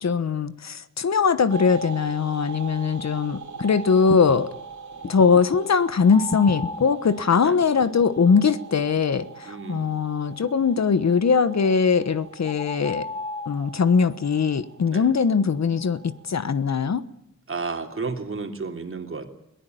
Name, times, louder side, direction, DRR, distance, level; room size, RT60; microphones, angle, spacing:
voice 1, 0.0-4.5 5.1-13.1 13.5-16.0 16.3-17.1, left 5 dB, 65° left, 1.2 m, -21 dB
sound 1, 1.5-16.9, right 5 dB, 85° right, 2.9 m, -41 dB
sound 2, 3.6-3.7 4.1-4.4 5.0-5.6 6.3-6.9 7.8-8.4 8.8-9.4 10.4-11.1 12.0-12.1, left 5 dB, 45° left, 1.1 m, -33 dB
sound 3, 6.1-7.0 11.6-11.7 12.4-13.7, left 2 dB, 20° left, 1.3 m, -35 dB
voice 2, 9.4-9.9 14.9-15.1 17.5-19.3, right 4 dB, 45° right, 3.1 m, -32 dB
22.0 x 18.5 x 9.3 m
wide cardioid pair, 125°, 29 cm